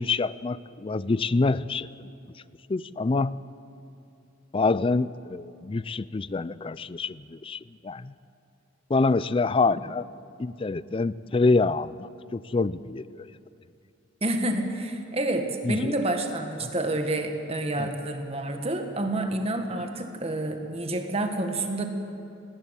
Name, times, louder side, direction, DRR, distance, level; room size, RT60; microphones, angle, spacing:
voice 1, 0.0-1.9 2.7-3.4 4.5-8.1 8.9-10.1 10.4-13.3 15.6-15.9 17.8-17.9, left 3 dB, 25° left, 18 dB, 0.4 m, -26 dB
voice 2, 14.2-21.8, right 1 dB, 30° right, 5 dB, 1.7 m, -28 dB
18.5 x 18.0 x 8.3 m, 2.6 s
head